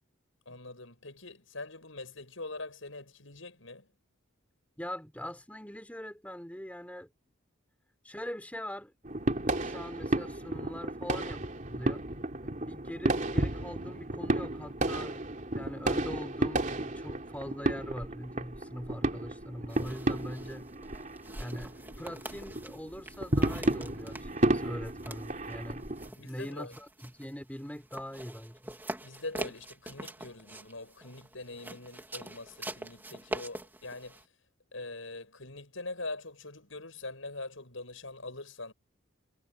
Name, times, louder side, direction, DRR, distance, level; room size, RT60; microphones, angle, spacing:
voice 1, 0.5-3.9 26.2-26.7 29.0-34.2 34.7-38.7, left 2 dB, 70° left, 6.8 m, -43 dB
voice 2, 4.8-7.1 8.0-8.9 9.4-12.0 12.4-20.7 21.4-28.8, equal, 5° left, 3.7 m, -42 dB
sound 1, 9.0-26.1, right 1 dB, 40° right, 3.4 m, -32 dB
sound 2, 19.7-34.2, right 1 dB, 10° right, 3.6 m, -45 dB
head